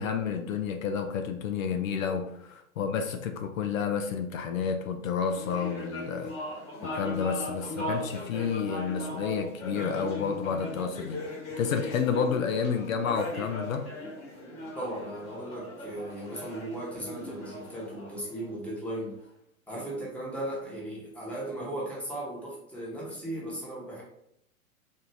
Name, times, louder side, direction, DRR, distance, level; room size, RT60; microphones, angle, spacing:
voice 1, 0.0-6.3 6.8-11.2 11.6-13.9, left 6 dB, 65° left, 6 dB, 0.6 m, -30 dB
sound 1, 5.2-18.9, left 1 dB, 30° left, 1.4 m, -39 dB
voice 2, 14.7-19.1 19.7-24.0, right 1 dB, 5° left, -5 dB, 0.9 m, -37 dB
4.4 x 2.4 x 3.2 m, 0.74 s
hypercardioid pair, 120°, 43 cm